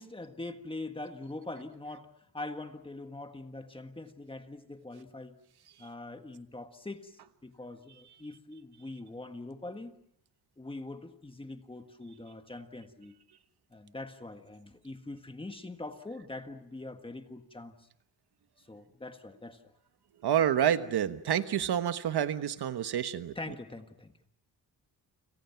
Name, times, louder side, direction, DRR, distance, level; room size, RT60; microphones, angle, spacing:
voice 1, 0.0-5.3 5.8-9.9 10.6-13.1 13.7-17.8 18.7-19.6 23.3-24.1, left 2 dB, 15° left, 1.6 m, -43 dB
voice 2, 20.2-23.3, right 10 dB, 85° right, 1.3 m, -28 dB
30.0 x 27.5 x 5.9 m
wide cardioid pair, 170°, 38 cm